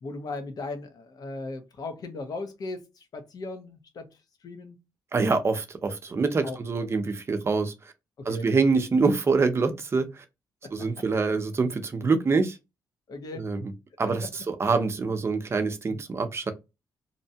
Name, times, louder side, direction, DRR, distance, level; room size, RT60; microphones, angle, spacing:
voice 1, 0.0-4.1 4.4-4.8 6.4-6.6 8.2-8.5 13.1-13.5 15.9-16.0, left 3 dB, 55° left, 0.8 m, -37 dB
voice 2, 5.1-7.7 8.2-10.2 10.7-12.6 13.3-13.7 14.0-16.5, right 4 dB, 35° right, 0.6 m, -25 dB
2.7 x 2.2 x 2.7 m
cardioid pair, 90°, 8 cm